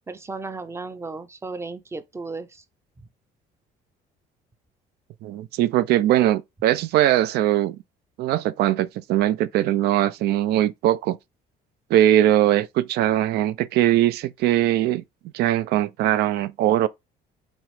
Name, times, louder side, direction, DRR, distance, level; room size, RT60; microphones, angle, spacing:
voice 1, 0.1-2.6, right 3 dB, 15° right, 0.5 m, -35 dB
voice 2, 5.2-7.8 8.2-11.2 11.9-15.0 15.3-16.9, right 13 dB, 75° right, 0.4 m, -21 dB
3.9 x 3.1 x 3.0 m
cardioid pair, 110°, 17 cm